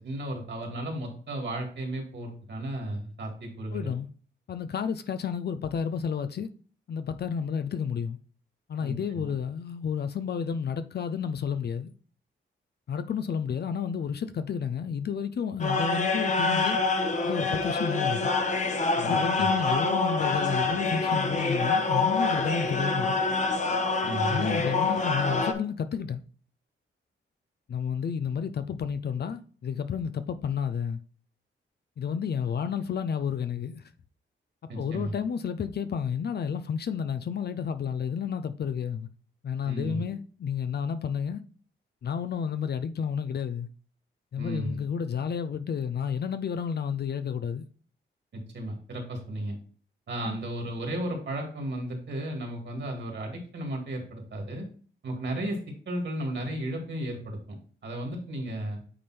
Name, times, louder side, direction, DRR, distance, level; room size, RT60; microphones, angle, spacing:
voice 1, 0.0-3.9 8.8-9.3 19.0-19.5 24.0-24.6 34.7-35.2 39.6-40.1 44.4-44.8 48.3-49.6 50.1-54.7 55.0-57.4 57.8-58.8, right 1 dB, 60° right, 2.4 m, -34 dB
voice 2, 3.7-4.1 4.5-6.5 6.9-8.2 8.7-11.9 12.9-16.8 17.2-18.3 19.0-23.2 24.3-26.2 27.7-31.0 32.0-33.8 34.8-39.1 39.4-41.4 42.0-43.7 44.3-47.7 50.2-50.4, left 7 dB, 50° left, 0.5 m, -31 dB
sound 1, 15.6-25.5, left 3 dB, 35° left, 1.0 m, -26 dB
8.7 x 3.5 x 4.3 m
wide cardioid pair, 120°, 21 cm